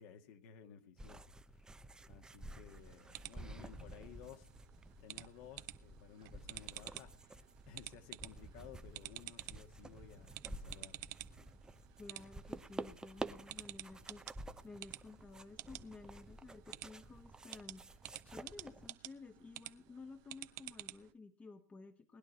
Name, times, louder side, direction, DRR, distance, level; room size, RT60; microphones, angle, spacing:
voice 1, 0.0-1.8 2.1-4.5 5.0-11.1, left 8 dB, 50° left, 2.1 m, -57 dB
sound 1, 1.0-18.9, right 2 dB, 10° right, 0.8 m, -51 dB
sound 2, 2.7-21.1, right 18 dB, 40° right, 0.9 m, -52 dB
voice 2, 12.0-14.2 14.6-17.8 18.2-22.2, left 3 dB, 15° left, 1.4 m, -53 dB
19.5 x 11.0 x 4.2 m
hypercardioid pair, 115°, 9 cm